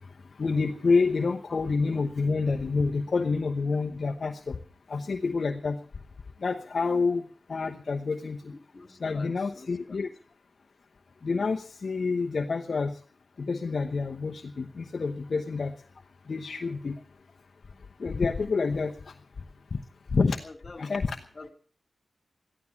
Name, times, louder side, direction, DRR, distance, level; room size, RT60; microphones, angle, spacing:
voice 1, 0.4-4.6 4.9-5.8 6.4-8.5 9.0-10.1 11.2-13.0 13.4-15.7 16.3-17.0 18.0-19.1 19.7-19.8 20.1-20.4 20.8-21.2, left 4 dB, 60° left, 4 dB, 1.0 m, -28 dB
voice 2, 8.4-10.1 20.4-21.0 21.3-21.5, left 3 dB, 45° left, 8 dB, 2.4 m, -47 dB
14.5 x 12.0 x 7.2 m, 0.43 s
cardioid pair, 70°, 0 cm